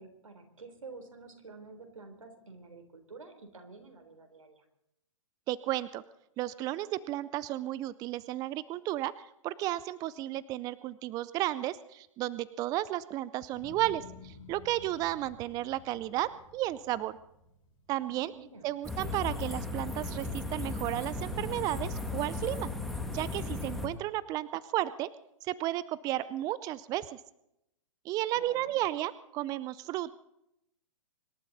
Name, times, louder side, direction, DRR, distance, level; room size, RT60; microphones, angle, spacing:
voice 1, 0.0-4.7 18.1-18.7 28.3-28.8, right 3 dB, 85° right, 7 dB, 3.6 m, -50 dB
voice 2, 5.5-6.0 6.4-17.2 17.9-18.3 18.6-22.7 23.1-25.1 25.4-27.2 28.0-30.1, right 14 dB, 20° right, 18 dB, 0.5 m, -33 dB
sound 1, 13.5-19.9 20.3-20.9, left 4 dB, 30° left, 7.2 m, -54 dB
sound 2, 18.8-23.9, left 2 dB, ahead, 2.2 m, -36 dB
25.5 x 12.0 x 4.1 m, 0.80 s
hypercardioid pair, 130°, 17 cm